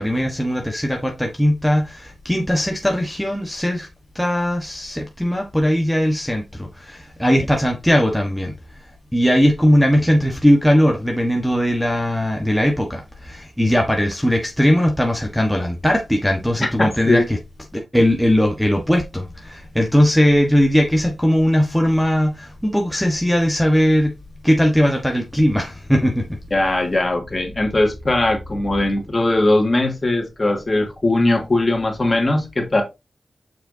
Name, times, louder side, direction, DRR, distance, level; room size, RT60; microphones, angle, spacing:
voice 1, 0.0-3.9 4.1-8.5 9.1-17.4 17.7-24.1 24.4-26.3, equal, ahead, 1.4 m, -19 dB
voice 2, 16.6-17.2 26.5-32.8, left 2 dB, 35° left, 2.6 m, -19 dB
7.0 x 5.6 x 2.7 m
wide cardioid pair, 75°, 0 cm